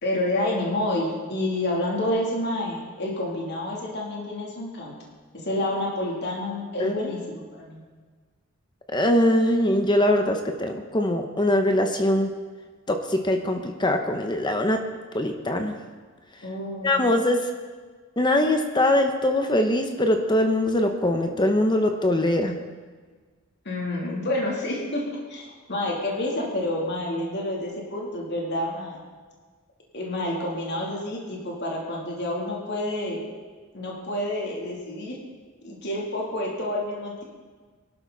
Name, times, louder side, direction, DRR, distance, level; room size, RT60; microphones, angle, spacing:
voice 1, 0.0-4.9 5.4-7.8 16.4-17.0 23.6-29.0 29.9-33.2 33.7-35.2 35.6-37.2, left 1 dB, 50° left, -3 dB, 3.1 m, -29 dB
voice 2, 8.9-12.3 12.9-14.8 15.1-15.8 16.8-17.5 18.2-22.6, left 1 dB, 20° left, 5 dB, 1.0 m, -22 dB
22.0 x 12.5 x 4.1 m, 1.5 s
head